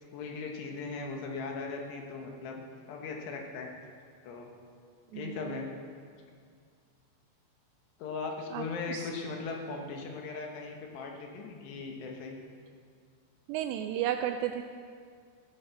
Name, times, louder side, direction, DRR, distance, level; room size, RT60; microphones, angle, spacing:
voice 1, 0.1-2.6 2.9-3.7 4.2-4.5 5.1-5.7 8.0-12.4, left 4 dB, 70° left, 1 dB, 3.1 m, -38 dB
voice 2, 5.1-5.7 8.5-9.1 13.5-14.6, right 11 dB, 85° right, 7 dB, 2.5 m, -34 dB
14.5 x 9.6 x 5.8 m, 2.1 s
omnidirectional pair, 5.4 m